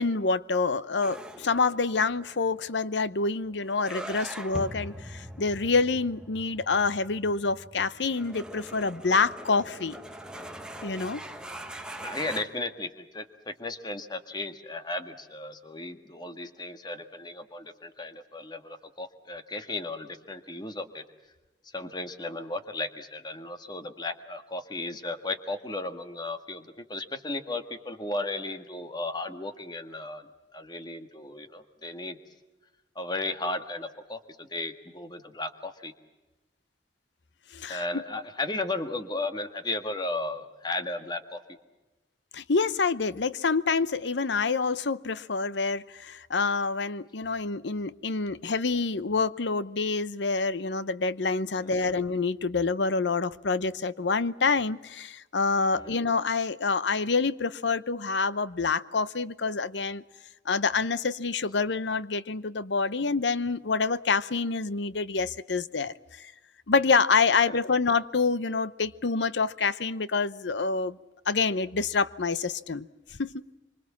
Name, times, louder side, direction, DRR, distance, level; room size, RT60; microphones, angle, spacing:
voice 1, 0.0-10.0 10.8-11.2 37.5-38.0 42.3-60.0 60.5-66.3 66.7-71.0 71.3-72.9 73.2-73.3, left 4 dB, 75° left, 0.8 m, -27 dB
sound 1, 1.0-12.4, right 1 dB, 5° right, 1.3 m, -42 dB
voice 2, 12.0-21.0 21.6-32.2 33.0-35.9 37.7-41.6 51.6-51.9 55.7-56.0 67.5-67.6, left 2 dB, 25° left, 1.7 m, -35 dB
25.5 x 25.0 x 7.3 m
head